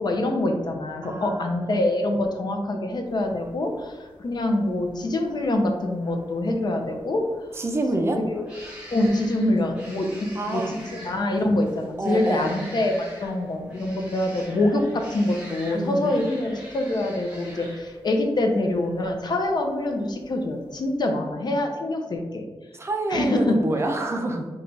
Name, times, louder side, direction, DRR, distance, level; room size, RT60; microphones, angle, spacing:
voice 1, 0.0-7.2 8.1-8.5 8.9-22.4 23.1-23.6, left 1 dB, 50° left, 4 dB, 0.5 m, -25 dB
voice 2, 1.0-1.8 7.5-8.2 10.3-10.7 12.0-12.6 15.7-16.1 22.7-24.5, right 2 dB, 30° right, 4 dB, 0.4 m, -27 dB
sound 1, 3.0-21.2, equal, 10° right, 0.9 m, -46 dB
3.2 x 2.3 x 3.8 m, 1.3 s
wide cardioid pair, 165°, 9 cm